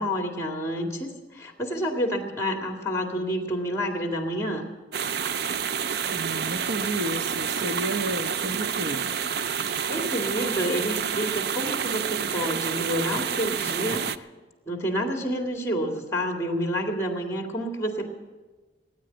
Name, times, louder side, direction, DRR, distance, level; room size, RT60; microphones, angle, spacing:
voice 1, 0.0-4.6 9.6-14.3 14.7-18.1, equal, 15° left, 3 dB, 2.0 m, -29 dB
sound 1, 4.9-14.2, right 7 dB, 60° right, 0.4 m, -29 dB
voice 2, 6.1-9.0, right 1 dB, 80° right, 7 dB, 1.2 m, -31 dB
18.0 x 9.5 x 7.8 m, 1.3 s
head